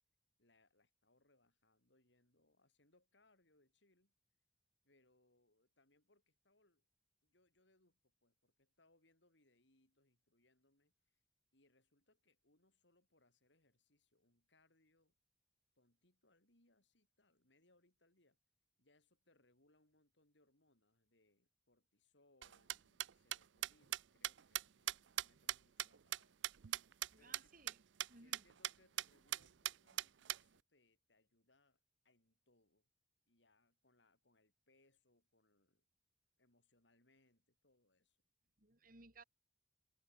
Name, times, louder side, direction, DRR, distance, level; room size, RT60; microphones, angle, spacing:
voice 1, 0.4-4.1 4.8-6.8 7.2-11.2 11.5-15.1 15.7-18.4 18.8-26.4 27.2-27.6 28.1-32.9 33.3-35.8 36.4-38.2, left 2 dB, 80° left, 6.9 m, -76 dB
sound 1, 22.4-27.1 27.3-27.4 27.7-27.8 28.0-28.1 28.3-28.7 29.0-29.1 29.3-30.4, right 13 dB, 85° right, 0.5 m, -40 dB
voice 2, 27.1-27.8 28.1-28.4 38.6-39.2, right 3 dB, 50° right, 5.4 m, -61 dB
head